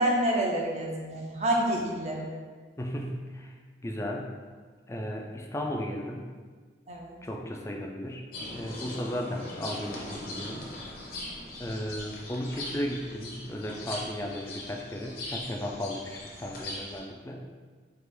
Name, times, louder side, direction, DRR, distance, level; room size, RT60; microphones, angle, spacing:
voice 1, 0.0-2.3 6.9-7.1, right 1 dB, 40° right, -1 dB, 0.6 m, -28 dB
voice 2, 2.8-3.5 3.8-4.3 4.9-6.3 7.2-10.7 11.6-17.5, equal, 15° left, 1 dB, 0.3 m, -35 dB
sound 1, 8.3-17.0, left 1 dB, 50° left, 0.8 m, -40 dB
4.6 x 2.5 x 3.5 m, 1.5 s
head